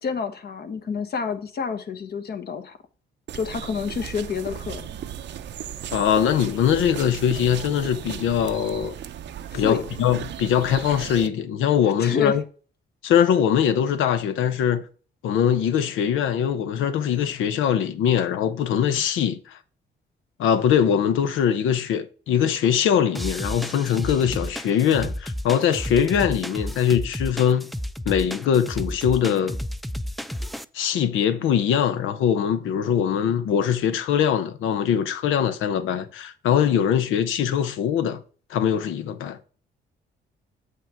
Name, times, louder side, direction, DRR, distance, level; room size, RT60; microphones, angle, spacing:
voice 1, 0.0-2.8 3.3-4.9 9.5-9.8 12.0-12.4, left 5 dB, 55° left, 1.2 m, -29 dB
sound 1, 3.3-11.3, right 9 dB, 65° right, 0.6 m, -36 dB
voice 2, 5.9-9.0 9.5-12.4 13.0-14.8 15.2-19.6 20.4-27.7 28.1-29.6 30.7-38.2 38.5-39.4, left 8 dB, 80° left, 0.9 m, -22 dB
sound 2, 23.1-30.6, equal, ahead, 0.4 m, -32 dB
7.6 x 5.5 x 3.5 m
cardioid pair, 90°, 20 cm